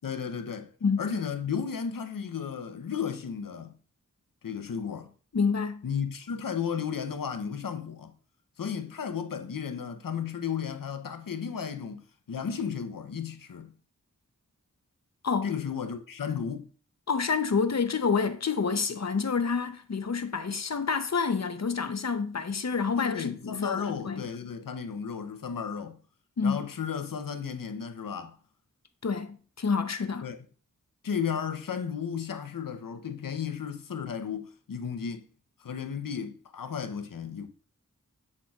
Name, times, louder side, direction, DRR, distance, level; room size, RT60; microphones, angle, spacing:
voice 1, 0.0-0.7 1.0-3.7 4.4-5.1 5.8-8.1 8.6-12.0 12.3-13.7 15.4-16.7 23.0-26.0 26.4-28.4 30.2-30.4 31.0-35.2 35.6-37.5, left 7 dB, 90° left, 0.7 m, -34 dB
voice 2, 5.3-5.8 15.2-15.5 17.1-24.2 26.4-26.7 29.0-30.3, left 5 dB, 55° left, 0.7 m, -28 dB
7.4 x 6.3 x 2.4 m
wide cardioid pair, 55°, 32 cm